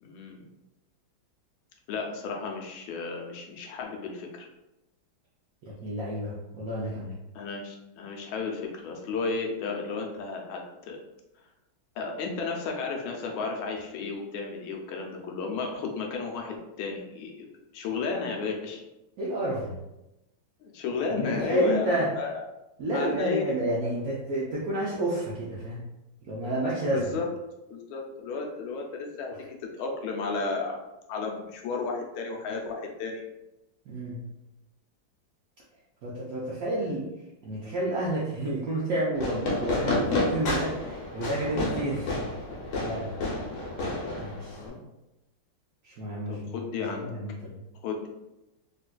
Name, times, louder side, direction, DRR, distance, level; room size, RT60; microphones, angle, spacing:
voice 1, 0.0-0.5 1.9-4.5 7.3-11.0 12.0-18.8 20.6-22.4 22.9-23.6 26.9-27.3 27.7-30.8 31.1-33.2 44.6-44.8 46.3-47.1 47.8-48.1, left 4 dB, 85° left, 1 dB, 1.4 m, -33 dB
voice 2, 5.6-7.2 19.2-19.8 21.2-22.1 22.8-25.8 26.2-27.1 33.9-34.2 36.0-37.1 37.4-42.3 42.8-43.2 44.2-44.6 45.8-46.5 47.0-47.6, right 1 dB, 75° right, -6 dB, 0.8 m, -30 dB
Fireworks, 39.1-44.7, left 2 dB, 70° left, 1.4 m, -30 dB
3.8 x 2.4 x 2.2 m, 0.94 s
omnidirectional pair, 2.2 m